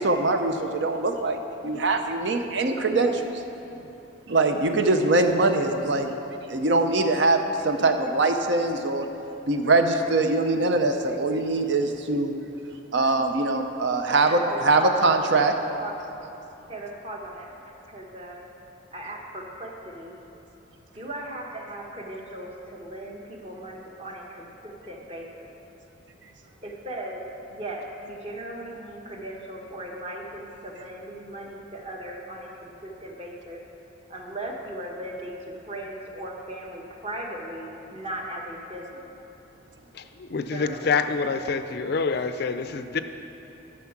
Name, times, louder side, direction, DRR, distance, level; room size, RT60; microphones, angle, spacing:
voice 1, 0.0-1.4 1.6-3.3 4.3-6.1 6.5-9.1 9.5-12.4 12.9-15.5, right 2 dB, 60° right, 6 dB, 0.6 m, -22 dB
voice 2, 14.1-15.0 15.8-16.0 16.7-17.5 17.9-18.5 18.9-20.1 20.9-25.5 26.6-27.2 27.5-33.6 34.1-39.1 40.5-40.9, right 1 dB, 30° right, 0 dB, 1.1 m, -37 dB
voice 3, 39.9-43.0, left 4 dB, 50° left, 10 dB, 0.4 m, -27 dB
11.0 x 6.4 x 5.9 m, 3.0 s
head